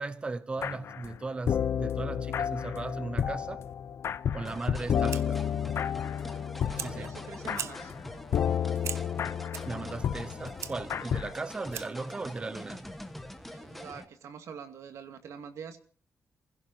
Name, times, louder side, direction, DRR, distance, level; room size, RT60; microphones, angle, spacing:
voice 1, 0.0-3.6 4.3-5.4 6.8-7.1 9.7-12.9, right 3 dB, 20° right, 0.7 m, -37 dB
sound 1, 0.6-1.2 1.5-11.3, left 8 dB, 60° left, 0.6 m, -31 dB
sound 2, 4.4-14.0, left 1 dB, ahead, 1.4 m, -44 dB
Fire, 4.7-12.1, right 8 dB, 70° right, 1.0 m, -44 dB
voice 2, 6.6-8.0 13.5-15.8, right 7 dB, 90° right, 2.2 m, -45 dB
29.5 x 16.0 x 2.8 m
wide cardioid pair, 175°, 5 cm